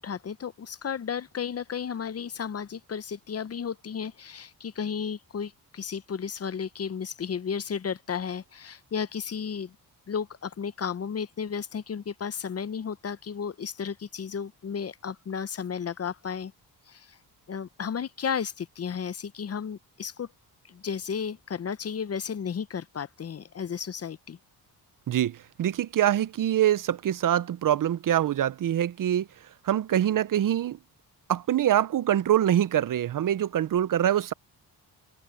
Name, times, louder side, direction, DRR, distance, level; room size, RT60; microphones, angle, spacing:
voice 1, 0.0-9.7 10.1-16.5 16.9-17.2 17.5-20.3 20.6-24.4, left 7 dB, 35° left, 0.7 m, -33 dB
voice 2, 25.1-30.8 31.3-34.3, right 11 dB, 50° right, 0.6 m, -25 dB
cardioid pair, 105°, 41 cm